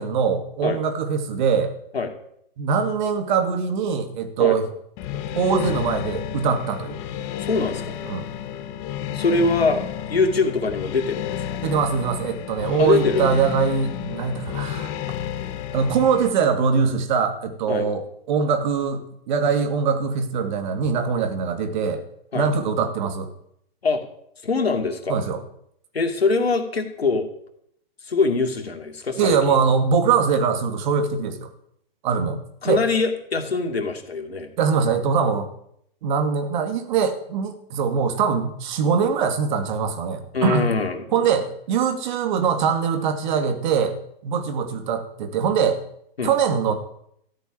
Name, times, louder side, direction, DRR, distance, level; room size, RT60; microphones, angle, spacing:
voice 1, 0.0-1.7 2.6-4.6 5.3-7.0 8.1-8.2 11.6-14.9 15.7-19.0 19.3-22.0 22.3-23.3 25.1-25.4 29.2-31.5 32.0-32.8 34.6-35.5 36.0-40.7 41.1-44.0 44.2-45.8 46.2-46.7, right 6 dB, 50° right, 7 dB, 2.4 m, -22 dB
sound 1, 5.0-16.3, left 10 dB, 30° left, 1.2 m, -31 dB
voice 2, 7.4-7.9 9.1-11.6 12.8-13.3 17.7-17.8 22.3-22.5 23.8-24.0 24.4-25.2 25.9-27.3 28.0-29.6 32.6-34.5 40.3-41.2 46.2-46.3, left 4 dB, 90° left, 4 dB, 2.6 m, -23 dB
14.0 x 6.8 x 10.0 m, 0.71 s
hypercardioid pair, 130°, 30 cm